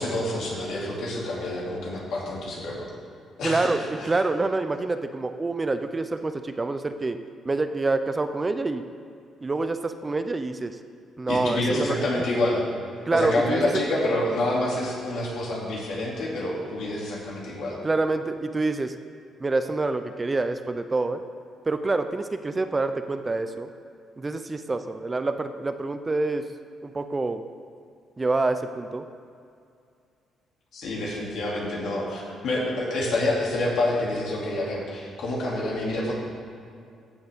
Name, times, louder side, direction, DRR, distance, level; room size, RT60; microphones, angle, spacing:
voice 1, 0.0-2.9 3.4-4.2 11.3-12.6 13.1-17.7 30.7-36.1, left 1 dB, 75° left, -4 dB, 2.6 m, -27 dB
voice 2, 3.4-7.2 7.5-8.8 9.4-10.8 11.2-12.0 13.1-13.6 17.8-18.9 19.4-21.2 21.7-23.7 24.2-26.4 26.8-27.4 28.2-29.0, right 3 dB, 25° right, 9 dB, 0.5 m, -26 dB
14.5 x 7.0 x 3.6 m, 2.4 s
cardioid pair, 90°, 0 cm